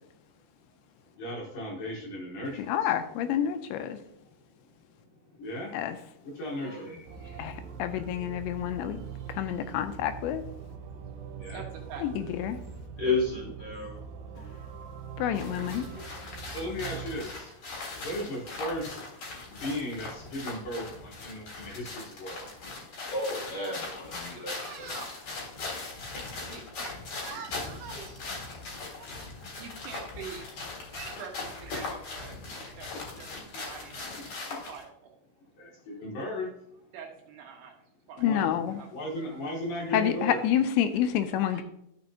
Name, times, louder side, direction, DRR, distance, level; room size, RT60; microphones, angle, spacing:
voice 1, 1.2-2.9 5.4-5.7 6.4-7.0 11.4-11.6 16.5-17.5 18.0-19.0 19.6-22.4 35.6-36.5 38.2-38.4 38.9-40.4, equal, 65° left, -2 dB, 2.4 m, -36 dB
voice 2, 2.7-4.0 5.7-6.0 7.4-9.0 9.3-10.4 12.0-12.6 15.2-15.8 38.2-38.8 39.9-41.6, left 10 dB, 85° left, 9 dB, 2.8 m, -28 dB
voice 3, 6.6-7.5 13.0-14.0 14.4-14.5 15.9-16.0 16.5-16.7 23.1-24.9, left 3 dB, 30° left, -5 dB, 2.2 m, -33 dB
sound 1, 7.1-17.2, right 7 dB, 90° right, 3.3 m, -42 dB
voice 4, 11.5-12.0 12.8-12.9 17.8-18.2 24.3-25.1 26.4-28.6 28.9-29.1 29.6-30.5 30.9-32.9 33.2-33.3 33.6-34.2 34.7-35.1 36.9-37.7 38.1-38.9 39.2-39.4 39.7-39.8 40.1-40.2 41.3-41.6, right 6 dB, 70° right, 0 dB, 3.1 m, -45 dB
sound 2, 15.3-34.8, left 3 dB, 50° left, 2.2 m, -40 dB
12.0 x 6.2 x 2.8 m, 0.76 s
omnidirectional pair, 5.3 m